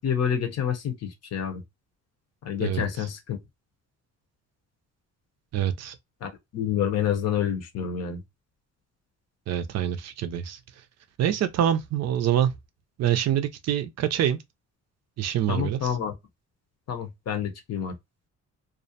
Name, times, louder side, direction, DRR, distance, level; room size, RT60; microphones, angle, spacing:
voice 1, 0.0-1.6 2.4-3.4 6.2-8.2 15.5-16.1 16.9-17.9, left 8 dB, 55° left, 0.7 m, -28 dB
voice 2, 2.6-3.1 5.5-5.9 9.5-10.6 11.2-12.5 13.0-14.4 15.2-16.0, right 10 dB, 60° right, 0.4 m, -25 dB
2.4 x 2.1 x 2.6 m
cardioid pair, 90°, 30 cm